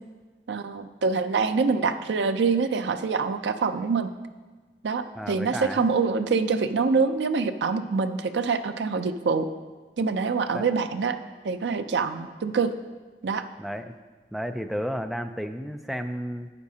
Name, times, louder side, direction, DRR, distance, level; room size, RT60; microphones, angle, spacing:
voice 1, 0.5-4.1 4.8-9.5 10.0-11.2 11.4-12.7 13.2-13.4, right 4 dB, 80° right, 9 dB, 0.5 m, -25 dB
voice 2, 5.1-5.8 10.5-10.7 13.6-14.0 14.3-16.5, equal, ahead, 7 dB, 0.3 m, -32 dB
11.5 x 8.2 x 2.8 m, 1.4 s
head